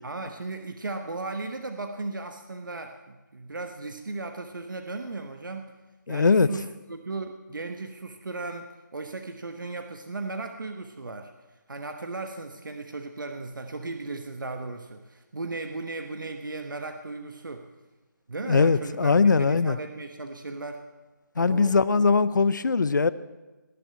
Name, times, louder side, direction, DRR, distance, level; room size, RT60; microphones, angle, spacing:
voice 1, 0.0-5.7 6.1-11.3 11.7-17.7 18.3-20.8 21.4-22.1, right 3 dB, 75° right, 6 dB, 1.2 m, -36 dB
voice 2, 6.1-6.5 18.5-19.8 21.4-23.1, left 4 dB, 65° left, 16 dB, 0.7 m, -21 dB
19.0 x 6.9 x 8.7 m, 1.2 s
figure-of-eight pair, 160°, 11 cm